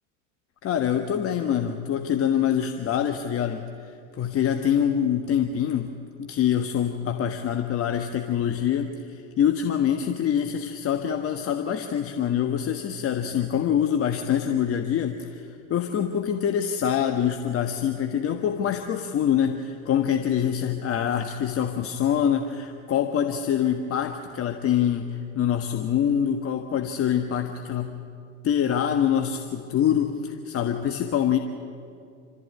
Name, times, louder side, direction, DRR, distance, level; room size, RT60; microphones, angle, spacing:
voice 1, 0.6-5.9 6.2-27.9 28.4-31.4, left 9 dB, 35° left, 5 dB, 1.4 m, -25 dB
27.0 x 13.5 x 9.5 m, 2.4 s
hypercardioid pair, 105°, 39 cm